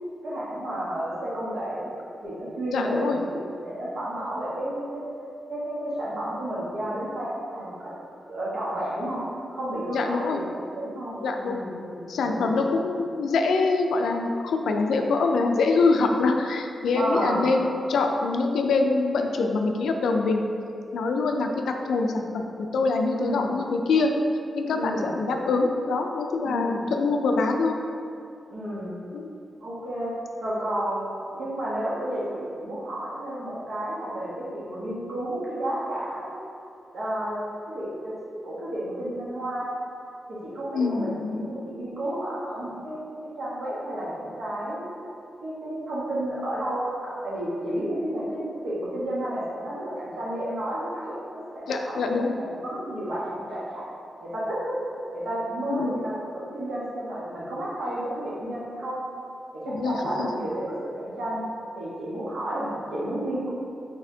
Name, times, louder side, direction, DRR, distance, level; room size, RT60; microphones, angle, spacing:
voice 1, 0.2-1.9 2.2-5.0 5.5-7.9 8.3-9.2 9.5-12.5 16.9-17.5 23.1-23.6 24.7-25.2 26.4-26.9 28.5-28.9 29.6-30.1 30.4-36.4 36.9-37.4 37.6-38.1 38.4-39.8 40.3-43.0 43.3-44.8 45.4-53.8 54.2-54.8 55.1-59.0 59.5-61.4 61.7-63.5, right 1 dB, 80° right, -7 dB, 1.1 m, -31 dB
voice 2, 2.7-3.2 9.9-10.4 11.2-11.6 12.1-20.4 20.9-24.1 24.5-27.8 29.1-29.3 40.7-41.5 51.7-52.4 55.7-55.9 59.7-60.3, left 3 dB, 90° left, 4 dB, 0.3 m, -24 dB
4.1 x 3.4 x 2.7 m, 2.6 s
cardioid pair, 85°, 0 cm